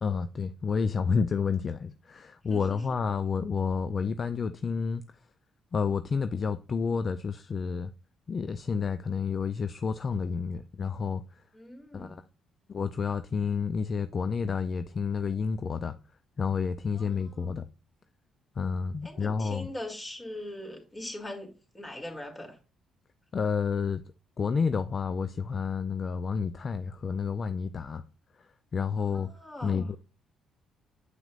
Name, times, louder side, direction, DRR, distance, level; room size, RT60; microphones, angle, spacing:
voice 1, 0.0-5.0 5.7-7.9 8.3-11.4 11.9-12.2 12.7-16.0 16.4-17.7 18.6-19.7 23.3-24.0 24.4-28.0 28.4-29.3 29.6-30.0, left 5 dB, 50° left, 0.4 m, -30 dB
voice 2, 2.5-2.8 11.5-12.2 16.9-17.5 19.0-22.6 29.1-29.9, left 1 dB, 25° left, 2.7 m, -41 dB
7.7 x 6.0 x 2.4 m
supercardioid pair, 55°, 0 cm